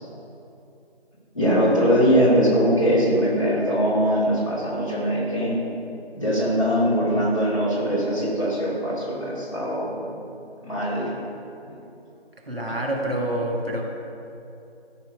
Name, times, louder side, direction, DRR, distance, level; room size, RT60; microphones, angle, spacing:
voice 1, 1.3-5.6 6.1-10.1 10.6-11.2 11.7-11.8 12.6-12.8, equal, 30° left, -9 dB, 2.5 m, -22 dB
voice 2, 12.5-13.8, right 1 dB, 60° right, 0 dB, 1.8 m, -27 dB
13.5 x 5.9 x 5.1 m, 2.8 s
figure-of-eight pair, 180°, 32 cm